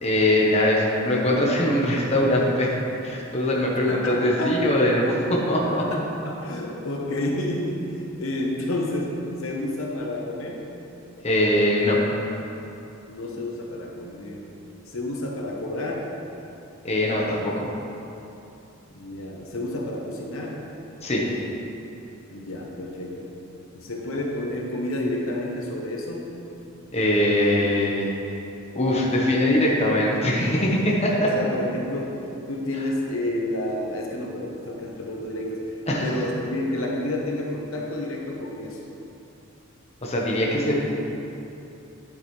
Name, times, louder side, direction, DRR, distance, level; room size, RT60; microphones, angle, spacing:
voice 1, 0.0-2.7 3.0-5.9 11.2-12.0 16.8-17.7 21.0-21.3 26.9-28.3 28.7-31.3 32.8-32.9 35.9-36.1 40.0-40.9, left 1 dB, 30° left, -3 dB, 1.1 m, -22 dB
voice 2, 3.9-4.6 5.8-9.1 9.4-10.6 13.1-14.4 14.9-16.1 18.9-20.6 22.3-23.2 23.7-26.2 31.2-32.2 32.5-35.6 36.0-38.8, left 1 dB, 75° left, -1 dB, 1.1 m, -30 dB
9.7 x 7.9 x 3.3 m, 2.9 s
head